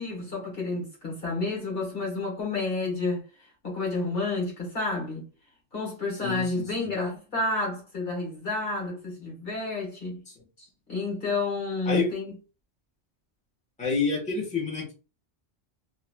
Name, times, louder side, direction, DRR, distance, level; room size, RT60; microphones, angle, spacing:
voice 1, 0.0-3.2 3.6-5.2 5.7-10.2 10.6-12.3, left 3 dB, 55° left, 1.5 m, -30 dB
voice 2, 6.2-6.9 10.3-10.4 11.8-12.1 13.8-14.9, left 5 dB, 5° left, 1.1 m, -28 dB
2.9 x 2.9 x 2.2 m
omnidirectional pair, 1.2 m